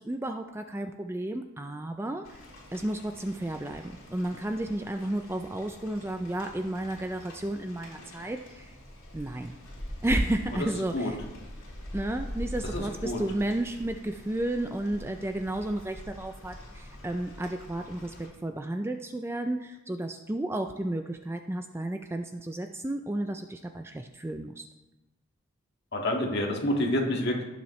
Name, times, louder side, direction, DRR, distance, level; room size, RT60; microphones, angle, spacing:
voice 1, 0.0-2.4 2.7-8.8 9.1-9.6 10.0-11.2 11.9-24.7, right 1 dB, 10° right, 6 dB, 0.3 m, -32 dB
Rain, 2.2-18.3, equal, 65° left, 4.1 m, -43 dB
voice 2, 12.7-13.2 25.9-27.4, left 1 dB, 50° left, 0 dB, 1.8 m, -28 dB
17.0 x 7.2 x 3.1 m, 1.1 s
head